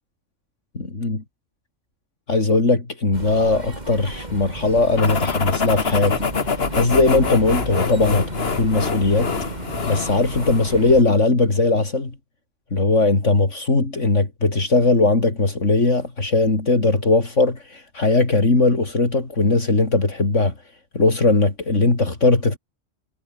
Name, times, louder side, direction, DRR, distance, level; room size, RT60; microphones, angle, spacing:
voice 1, 2.3-8.3 8.6-9.3 9.9-12.1 12.7-20.5 20.9-22.6, left 3 dB, 75° left, 4.0 m, -19 dB
sound 1, 3.1-11.0, right 2 dB, 35° right, 3.2 m, -34 dB
sound 2, 5.0-10.8, left 5 dB, 55° left, 1.9 m, -25 dB
omnidirectional pair, 1.3 m